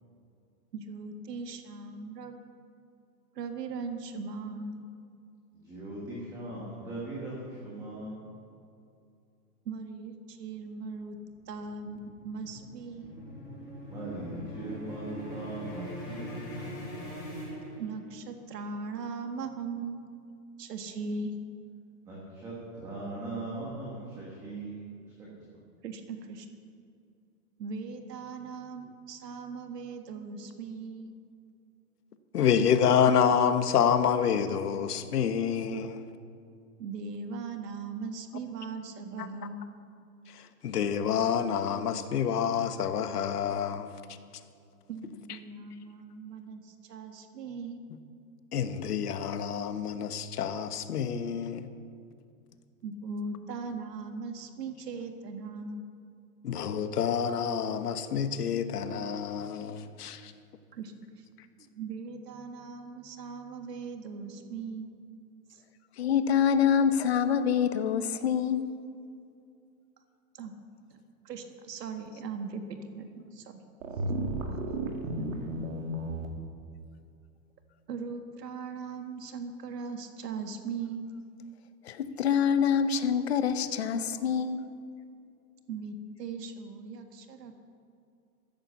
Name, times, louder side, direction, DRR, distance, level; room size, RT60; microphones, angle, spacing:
voice 1, 0.7-2.4 3.3-4.9 9.6-11.2 11.5-13.1 17.8-20.0 20.6-21.3 25.8-26.5 27.6-31.1 36.8-39.6 44.9-47.8 52.8-55.8 60.7-61.2 61.6-64.9 65.5-65.6 70.3-70.5 70.9-71.0 71.2-73.6 77.9-81.1 85.7-87.6, right 4 dB, 85° right, 6 dB, 1.8 m, -39 dB
voice 2, 5.5-8.5 13.9-16.6 22.0-25.6, right 2 dB, 5° right, -6 dB, 1.4 m, -40 dB
sound 1, 11.0-18.3, equal, 10° left, 4.7 m, -42 dB
voice 3, 32.3-36.1 39.2-39.3 40.3-43.9 48.5-51.7 56.4-60.3, left 7 dB, 75° left, 10 dB, 1.3 m, -28 dB
voice 4, 66.0-68.6 81.8-84.6, left 7 dB, 40° left, 11 dB, 0.8 m, -26 dB
sound 2, 73.8-76.3, right 1 dB, 60° right, 2.3 m, -33 dB
14.5 x 11.0 x 7.1 m, 2.4 s
hypercardioid pair, 180°, 47 cm